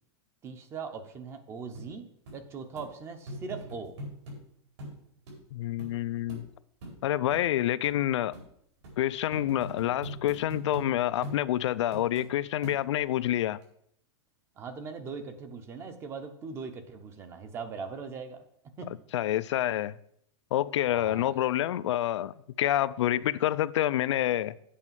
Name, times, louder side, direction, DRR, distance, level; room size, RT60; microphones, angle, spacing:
voice 1, 0.4-2.1 2.3-3.9 14.6-18.4 18.8-18.9 20.9-21.3, right 5 dB, 15° right, 0.7 m, -40 dB
sound 1, 1.7-1.9 2.3-2.4 2.8-2.9 3.3-4.4 4.8-5.0 5.3-5.4 5.8-5.9 6.3-6.4 6.8-7.0 7.3-7.4 7.8-7.9 8.3-8.5 8.8-9.0 9.3-10.9 11.2-11.4 11.9-12.3 12.6-13.1 13.6-13.7, equal, 70° right, 4.4 m, -41 dB
voice 2, 5.5-6.5 7.0-8.3 9.0-13.6 19.1-19.9 20.5-24.5, left 13 dB, 75° left, 0.4 m, -28 dB
8.4 x 5.4 x 7.3 m
supercardioid pair, 170°, 15 cm